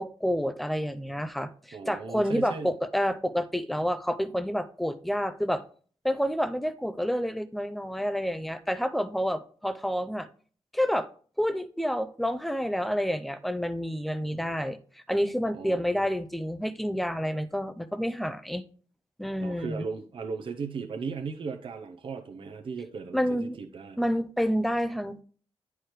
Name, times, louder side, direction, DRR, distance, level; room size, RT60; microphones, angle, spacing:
voice 1, 0.0-5.6 6.0-10.3 10.7-11.1 11.4-14.8 15.1-18.6 19.2-19.9 23.1-23.6 24.0-25.2, equal, ahead, 12 dB, 0.4 m, -29 dB
voice 2, 1.7-2.7 14.3-14.5 15.5-16.1 19.4-24.0, right 5 dB, 55° right, 4 dB, 0.6 m, -37 dB
10.0 x 4.7 x 3.1 m, 0.43 s
wide cardioid pair, 155°, 11 cm